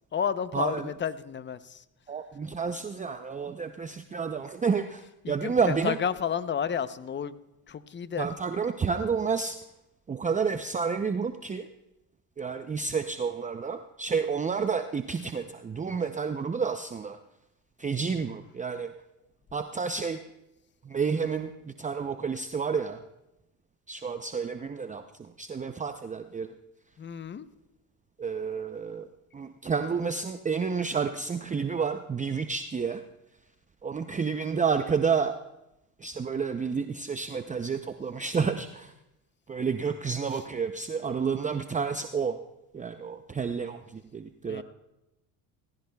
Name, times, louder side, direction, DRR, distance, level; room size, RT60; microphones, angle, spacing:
voice 1, 0.1-1.8 5.2-7.4 7.7-8.3 27.0-27.5 40.3-40.4 44.5-44.6, left 7 dB, 25° left, 14 dB, 0.7 m, -31 dB
voice 2, 2.1-6.0 8.2-9.6 10.1-11.7 12.4-17.2 17.8-18.9 19.5-20.2 20.8-23.0 23.9-26.5 28.2-33.0 33.8-35.4 36.0-38.9 39.5-42.4 42.7-44.6, right 5 dB, 20° right, 8 dB, 0.6 m, -30 dB
19.5 x 16.0 x 2.3 m, 0.90 s
supercardioid pair, 85°, 42 cm